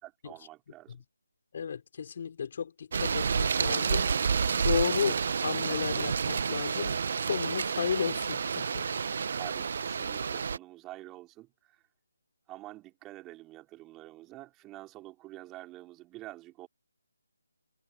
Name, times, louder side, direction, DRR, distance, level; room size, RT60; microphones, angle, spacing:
voice 1, 0.0-1.0 9.3-11.8 12.5-16.7, right 17 dB, 15° right, 4.9 m, -47 dB
voice 2, 1.5-4.1 4.6-8.8, left 7 dB, 40° left, 4.0 m, -33 dB
sound 1, 2.9-10.6, right 6 dB, 45° right, 1.1 m, -29 dB
figure-of-eight pair, 150°, 0 cm